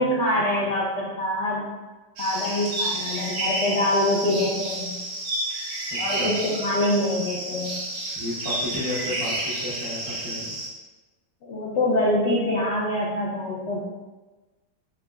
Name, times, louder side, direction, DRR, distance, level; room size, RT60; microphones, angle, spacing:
voice 1, 0.0-1.6 2.2-5.0 6.0-7.8 11.4-13.8, left 1 dB, 80° left, -5 dB, 0.6 m, -25 dB
sound 1, 2.2-10.7, right 1 dB, 75° right, 1.3 m, -30 dB
voice 2, 5.9-6.3 8.2-10.6, left 1 dB, 50° right, -11 dB, 0.4 m, -32 dB
4.4 x 2.2 x 2.3 m, 1.2 s
omnidirectional pair, 1.8 m